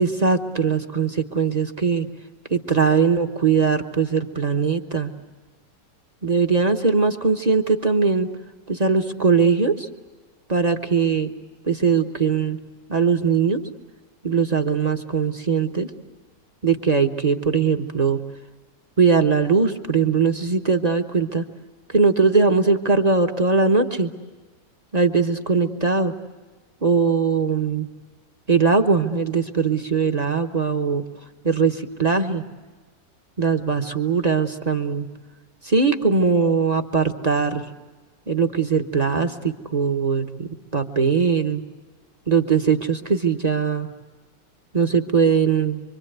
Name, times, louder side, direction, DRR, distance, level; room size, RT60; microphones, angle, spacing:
voice 1, 0.0-2.1 2.5-5.1 6.2-8.3 8.7-9.9 10.5-11.3 11.6-12.6 12.9-13.6 14.2-15.9 16.6-18.2 19.0-21.4 21.9-24.1 24.9-26.1 26.8-27.9 28.5-31.0 31.4-32.5 33.4-35.1 35.6-37.7 38.3-41.6 42.3-43.9 44.7-45.8, right 5 dB, 30° right, 6 dB, 1.0 m, -20 dB
25.5 x 25.0 x 8.0 m, 1.3 s
omnidirectional pair, 1.9 m